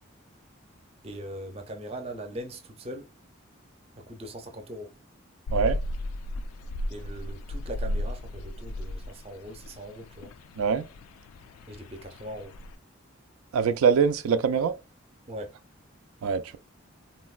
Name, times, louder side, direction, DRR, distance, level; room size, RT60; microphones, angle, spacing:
voice 1, 1.0-3.1 4.0-4.9 6.9-10.3 11.7-12.6 15.3-15.6, right 1 dB, 30° right, 0.5 m, -40 dB
sound 1, 5.5-12.7, left 1 dB, 90° left, 0.3 m, -35 dB
voice 2, 13.5-14.7 16.2-16.6, right 6 dB, 85° right, 0.3 m, -23 dB
3.7 x 2.1 x 2.3 m
head